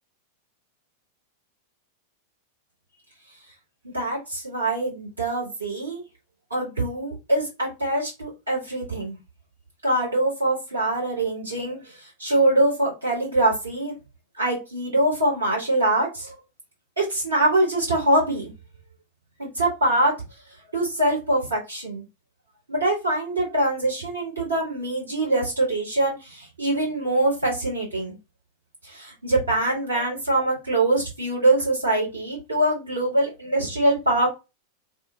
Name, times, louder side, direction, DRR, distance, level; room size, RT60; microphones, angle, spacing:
voice 1, 3.9-6.0 6.5-9.2 9.8-13.9 14.4-16.4 17.0-18.5 19.4-20.1 20.7-22.0 22.7-28.2 28.8-34.3, right 1 dB, 75° right, -3 dB, 1.4 m, -23 dB
2.5 x 2.1 x 3.6 m, 0.27 s
figure-of-eight pair, 90°, 0 cm